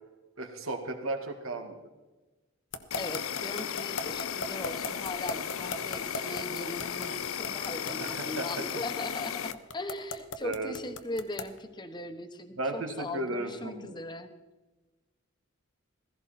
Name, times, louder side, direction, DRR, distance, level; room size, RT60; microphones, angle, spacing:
voice 1, 0.4-1.8 8.0-8.5 10.4-10.7 12.6-14.0, right 2 dB, 85° right, 5 dB, 2.0 m, -35 dB
sound 1, 2.7-11.6, left 3 dB, 60° left, 1.1 m, -37 dB
Insect, 2.9-9.5, left 8 dB, 85° left, 0.7 m, -35 dB
voice 2, 2.9-14.3, left 2 dB, 20° left, 9 dB, 1.1 m, -39 dB
16.0 x 16.0 x 4.3 m, 1.1 s
head